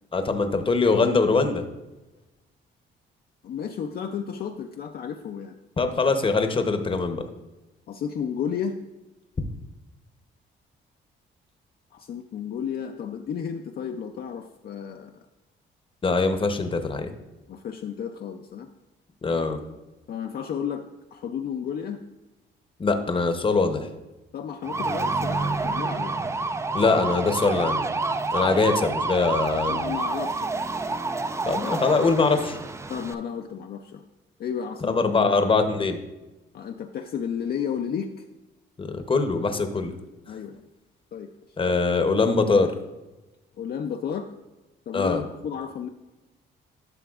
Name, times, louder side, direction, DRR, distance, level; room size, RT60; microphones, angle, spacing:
voice 1, 0.1-1.6 5.8-7.2 16.0-17.1 19.2-19.6 22.8-23.9 26.7-27.8 28.3-29.9 31.4-32.6 34.9-36.0 38.8-39.9 41.6-42.7 44.9-45.2, left 4 dB, 25° left, 7 dB, 0.8 m, -22 dB
voice 2, 3.4-5.5 5.8-5.9 7.9-8.8 11.9-15.2 17.5-18.7 20.1-20.8 21.1-22.0 24.3-26.2 29.7-30.6 32.9-34.0 34.4-35.4 36.5-38.3 40.3-40.6 41.1-41.3 41.7-41.8 43.6-44.3 44.9-45.9, left 7 dB, 50° left, 4 dB, 0.4 m, -32 dB
sound 1, 24.6-33.1, right 3 dB, 15° right, 0.3 m, -28 dB
11.5 x 5.7 x 2.4 m, 1.1 s
cardioid pair, 90°, 20 cm